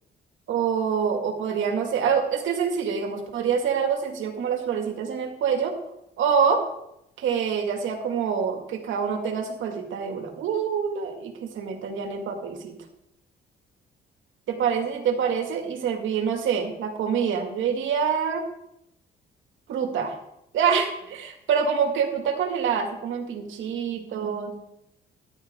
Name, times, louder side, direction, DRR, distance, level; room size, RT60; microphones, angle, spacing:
voice 1, 0.5-5.7 6.2-6.6 7.2-12.8 14.5-18.4 19.7-20.2 20.5-24.6, right 6 dB, 80° right, 3 dB, 2.2 m, -26 dB
14.0 x 11.0 x 3.7 m, 0.81 s
cardioid pair, 90°, 20 cm